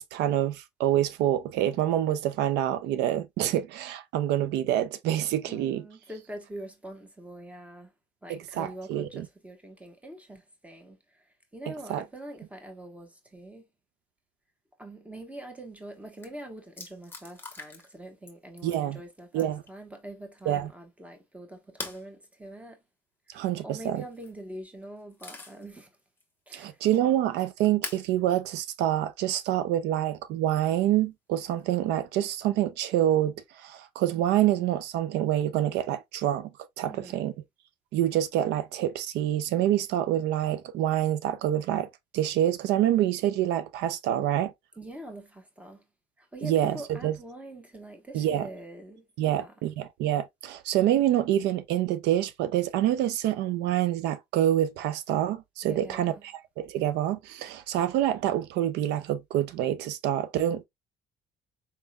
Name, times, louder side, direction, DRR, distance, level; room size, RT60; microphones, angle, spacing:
voice 1, 0.0-5.8 8.3-9.3 11.9-12.0 18.6-19.0 19.3-19.6 20.5-20.7 23.3-24.0 26.5-36.5 36.8-37.3 37.9-41.9 42.1-44.5 46.4-47.1 48.1-48.5 49.2-60.6, right 12 dB, 85° right, 0.5 m, -26 dB
voice 2, 5.4-7.9 8.2-13.7 14.8-22.8 23.3-26.0 26.5-26.8 36.8-37.3 44.7-45.8 46.2-49.7 55.6-56.3, right 1 dB, 10° right, 1.1 m, -44 dB
sound 1, 15.8-15.9 16.1-16.3 16.8-18.0 18.3-18.8 19.3-19.7 21.8-22.1 24.0-24.4 24.8-25.7 26.2-26.3 27.8-28.1 29.2-29.3 31.4-31.8, left 3 dB, 10° left, 1.2 m, -41 dB
4.3 x 3.5 x 2.2 m
cardioid pair, 110°, 17 cm